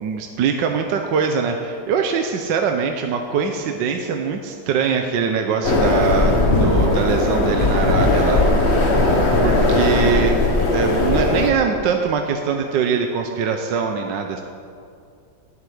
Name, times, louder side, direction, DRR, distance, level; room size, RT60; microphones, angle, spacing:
voice 1, 0.0-8.4 9.4-10.4 10.7-14.4, right 6 dB, 70° right, 4 dB, 1.4 m, -22 dB
sound 1, 5.6-11.5, left 2 dB, 35° left, 1.4 m, -18 dB
11.5 x 8.0 x 9.3 m, 2.4 s
omnidirectional pair, 2.2 m